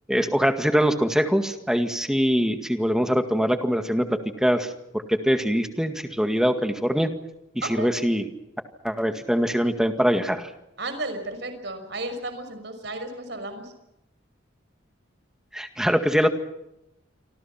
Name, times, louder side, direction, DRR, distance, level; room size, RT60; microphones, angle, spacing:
voice 1, 0.1-7.1 7.6-8.3 8.8-10.5 15.5-16.3, equal, 5° right, 6 dB, 2.0 m, -23 dB
voice 2, 10.8-13.7, right 2 dB, 60° right, 9 dB, 5.9 m, -33 dB
28.5 x 25.0 x 5.9 m, 0.88 s
head